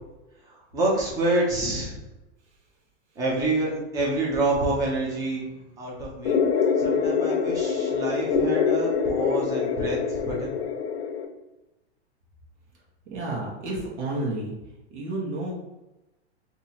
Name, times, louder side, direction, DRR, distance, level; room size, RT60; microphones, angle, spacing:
voice 1, 0.5-1.9 3.2-5.4 5.8-6.4 6.8-10.5, right 2 dB, 10° right, -3 dB, 0.5 m, -27 dB
sound 1, 6.2-11.2, left 6 dB, 60° left, 0.6 m, -25 dB
voice 2, 13.1-14.5 14.9-15.5, right 2 dB, 80° right, -4 dB, 1.3 m, -30 dB
2.9 x 2.7 x 4.2 m, 1.0 s
supercardioid pair, 165°, 34 cm